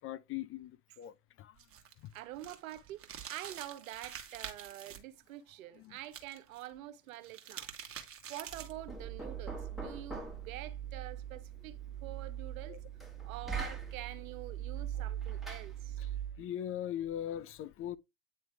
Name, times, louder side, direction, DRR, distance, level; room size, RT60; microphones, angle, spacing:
voice 1, 0.0-1.6 2.0-2.1 5.8-6.0 12.7-12.8 16.0-16.1 16.4-18.0, left 11 dB, 35° left, 0.4 m, -40 dB
Content warning, 1.6-5.0 6.0-6.6 7.1-8.9, right 9 dB, 35° right, 1.3 m, -47 dB
voice 2, 2.1-7.7 8.3-11.7 12.0-12.8 13.2-16.0, right 14 dB, 80° right, 0.7 m, -46 dB
Knock, 8.5-16.4, right 8 dB, ahead, 1.7 m, -41 dB
8.8 x 3.2 x 3.3 m
hypercardioid pair, 90°, 40 cm